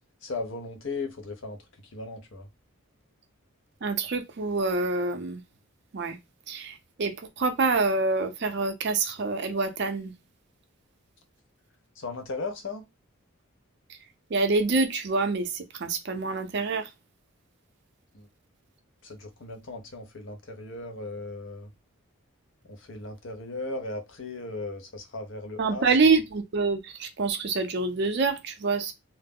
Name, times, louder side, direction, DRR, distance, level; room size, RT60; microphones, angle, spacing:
voice 1, 0.2-1.6 1.9-2.5 12.0-12.9 18.1-18.3 19.0-21.7 22.7-25.9, left 3 dB, 60° left, 0.5 m, -37 dB
voice 2, 3.8-5.4 5.9-6.2 6.5-10.1 14.3-16.9 25.6-28.9, right 3 dB, 50° right, 0.5 m, -26 dB
2.3 x 2.0 x 3.4 m
head